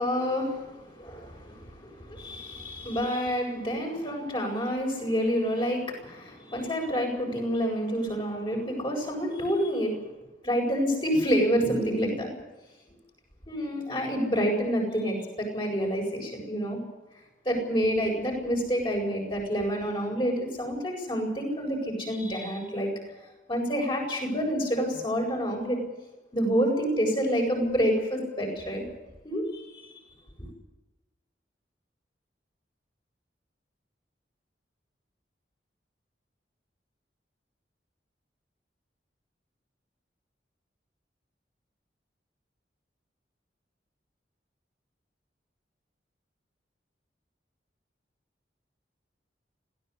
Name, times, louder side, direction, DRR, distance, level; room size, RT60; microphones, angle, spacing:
voice 1, 0.0-10.0 10.4-12.3 13.5-16.8 17.4-22.9 23.5-25.8 26.3-28.8 29.2-29.9, equal, 30° left, 0 dB, 7.9 m, -28 dB
22.0 x 17.0 x 8.4 m, 1.1 s
head